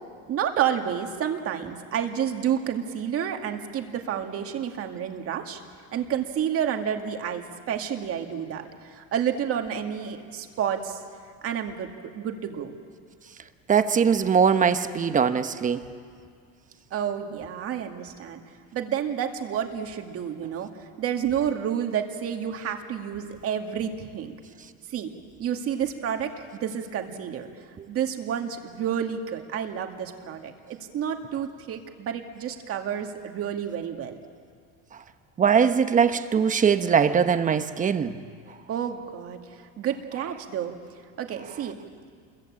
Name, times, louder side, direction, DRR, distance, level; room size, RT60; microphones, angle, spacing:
voice 1, 0.3-5.6 5.9-11.0 11.4-11.9 12.1-12.7 16.9-18.4 18.7-20.7 21.0-24.3 24.9-25.1 25.4-27.5 27.9-34.2 38.7-39.4 39.8-40.7 41.2-41.8, right 9 dB, 40° right, 4 dB, 2.1 m, -30 dB
voice 2, 13.7-15.9 35.4-38.2, right 7 dB, 20° right, 9 dB, 1.0 m, -21 dB
28.0 x 22.5 x 8.7 m, 2.1 s
cardioid pair, 150°, 35 cm